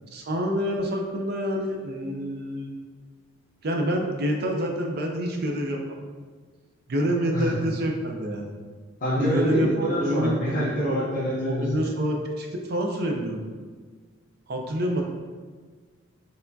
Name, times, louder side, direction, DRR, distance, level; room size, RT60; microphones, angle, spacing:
voice 1, 0.1-2.7 3.6-6.0 6.9-8.5 9.1-9.7 10.0-10.6 11.5-13.5 14.5-15.0, equal, 50° right, 1 dB, 0.5 m, -27 dB
voice 2, 9.0-11.9, equal, 40° left, -9 dB, 0.9 m, -26 dB
4.3 x 3.4 x 2.7 m, 1.5 s
head